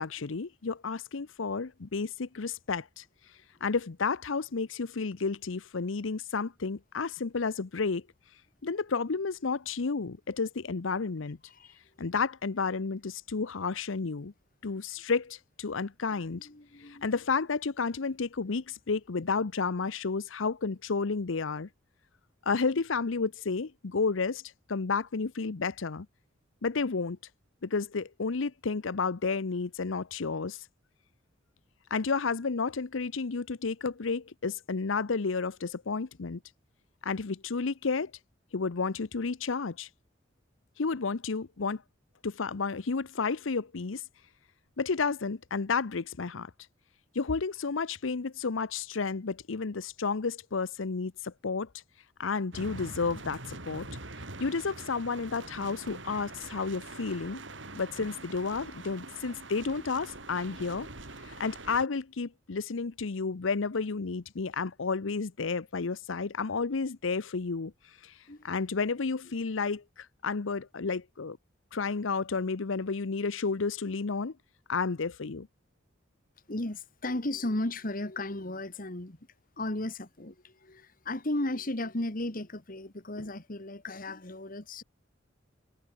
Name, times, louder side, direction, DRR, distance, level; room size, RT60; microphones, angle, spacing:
voice 1, 0.0-3.0 3.6-8.0 8.6-11.4 12.0-14.3 14.6-16.4 16.8-21.7 22.5-24.4 24.7-26.1 26.6-27.2 27.6-30.7 31.9-36.4 37.0-38.1 38.5-39.9 40.8-41.8 42.2-44.0 44.8-46.5 47.1-51.7 52.2-53.9 54.4-57.4 57.7-60.9 61.2-67.7 68.0-68.2 68.4-71.4 71.7-74.3 74.7-75.5, left 4 dB, 90° left, 0.8 m, -31 dB
voice 2, 11.5-11.8 16.3-17.0 68.3-68.5 76.5-79.2 79.6-84.8, left 1 dB, 45° left, 2.1 m, -35 dB
sound 1, 52.5-61.9, right 2 dB, 75° right, 5.6 m, -44 dB
head